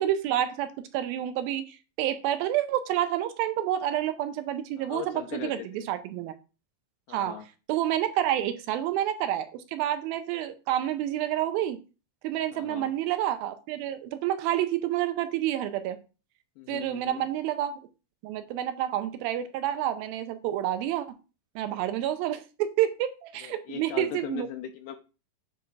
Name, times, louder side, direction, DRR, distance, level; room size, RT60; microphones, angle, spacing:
voice 1, 0.0-6.3 7.1-7.4 7.7-11.8 12.2-16.0 16.7-17.8 18.2-21.1 21.6-24.5, right 12 dB, 85° right, 9 dB, 2.4 m, -29 dB
voice 2, 4.8-5.9 7.1-7.5 12.5-12.9 16.6-17.3 23.4-25.0, left 11 dB, 80° left, 7 dB, 2.0 m, -39 dB
9.3 x 3.5 x 3.2 m, 0.32 s
omnidirectional pair, 4.2 m